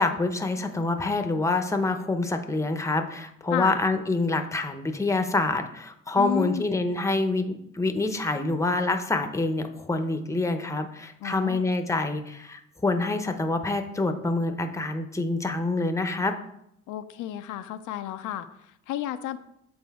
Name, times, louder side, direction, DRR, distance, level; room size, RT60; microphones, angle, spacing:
voice 1, 0.0-16.3, left 2 dB, 10° left, 6 dB, 0.7 m, -26 dB
voice 2, 6.1-6.7 11.2-11.7 16.9-19.4, left 12 dB, 85° left, 9 dB, 0.5 m, -32 dB
7.7 x 4.0 x 3.5 m, 0.76 s
cardioid pair, 90°, 30 cm